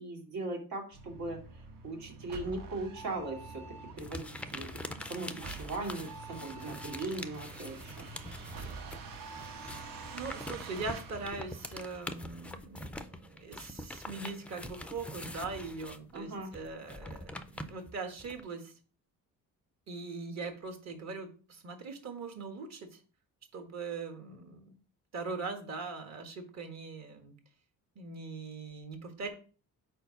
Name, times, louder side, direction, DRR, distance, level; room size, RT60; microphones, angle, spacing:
voice 1, 0.0-3.6 4.0-4.7 5.1-8.1 16.1-16.5, right 2 dB, 80° right, 0 dB, 2.5 m, -39 dB
sound 1, 0.9-12.4, right 4 dB, 65° right, 1.2 m, -47 dB
sound 2, 4.0-9.1 9.3-18.4, left 1 dB, 5° left, 0.3 m, -44 dB
voice 2, 10.1-18.7 19.9-23.0 23.5-24.7 25.1-27.3 27.9-29.3, right 4 dB, 45° right, 5 dB, 1.4 m, -41 dB
4.7 x 4.4 x 5.4 m, 0.38 s
cardioid pair, 150°, 36 cm